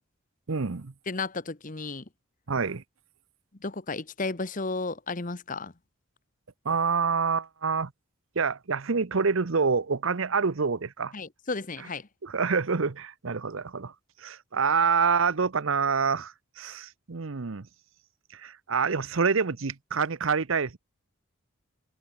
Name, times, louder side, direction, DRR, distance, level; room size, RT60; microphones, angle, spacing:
voice 1, 0.5-0.9 2.5-2.8 6.6-7.9 8.4-11.1 12.2-13.9 14.2-17.7 18.3-20.8, right 5 dB, 70° right, 0.8 m, -27 dB
voice 2, 1.1-2.0 3.6-5.7 11.1-12.1, left 3 dB, 40° left, 1.2 m, -33 dB
head